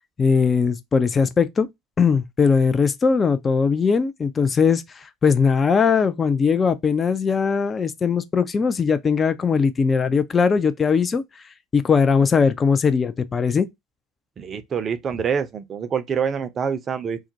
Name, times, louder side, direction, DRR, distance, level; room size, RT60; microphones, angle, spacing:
voice 1, 0.2-1.7 2.0-11.2 11.7-13.7, left 5 dB, 25° left, 0.3 m, -20 dB
voice 2, 14.4-17.2, right 7 dB, 35° right, 0.5 m, -26 dB
2.3 x 2.0 x 2.6 m
figure-of-eight pair, 65°, 0 cm